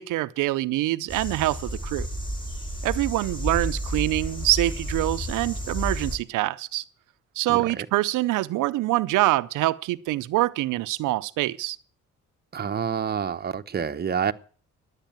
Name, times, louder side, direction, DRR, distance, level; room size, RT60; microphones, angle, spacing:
voice 1, 0.0-2.1 2.8-6.8 7.4-11.8, right 17 dB, 85° right, 0.6 m, -25 dB
sound 1, 1.1-6.2, equal, 15° left, 3.9 m, -31 dB
voice 2, 7.5-7.8 12.5-14.3, right 7 dB, 30° right, 0.9 m, -28 dB
11.5 x 8.3 x 8.9 m
cardioid pair, 90°, 30 cm